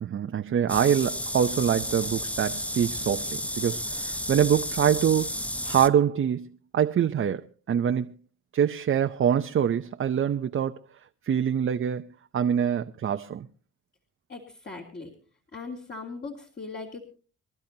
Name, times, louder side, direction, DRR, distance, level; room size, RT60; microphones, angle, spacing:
voice 1, 0.0-5.3 5.6-8.2 8.5-10.8 11.3-12.1 12.3-13.5, right 8 dB, 45° right, 0.7 m, -25 dB
sound 1, 0.7-5.9, left 1 dB, 5° left, 0.8 m, -32 dB
voice 2, 14.3-15.1 15.5-17.0, left 3 dB, 35° left, 3.0 m, -39 dB
27.0 x 12.0 x 2.8 m
cardioid pair, 90°, 30 cm